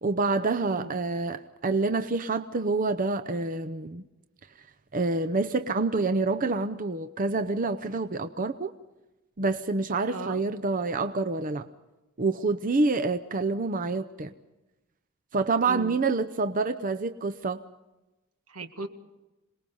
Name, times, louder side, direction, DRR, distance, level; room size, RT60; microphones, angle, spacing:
voice 1, 0.0-4.0 4.9-8.7 9.4-11.7 12.2-14.3 15.3-17.6, right 3 dB, 40° right, 8 dB, 0.7 m, -27 dB
voice 2, 10.1-10.4 15.6-16.0 18.5-18.9, right 3 dB, 80° right, 7 dB, 1.9 m, -38 dB
27.0 x 20.0 x 5.4 m, 1.0 s
head